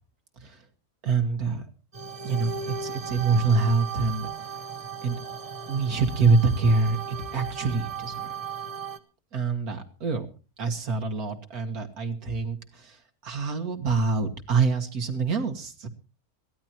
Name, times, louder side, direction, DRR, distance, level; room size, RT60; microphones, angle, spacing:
voice 1, 1.0-1.6 2.2-4.5 5.0-5.2 5.7-8.4 9.3-10.3 10.6-13.0 13.2-15.9, right 4 dB, 80° right, 5 dB, 2.1 m, -25 dB
sound 1, 1.9-9.0, right 6 dB, 25° right, 0.9 m, -36 dB
22.0 x 15.0 x 2.9 m, 0.33 s
omnidirectional pair, 1.6 m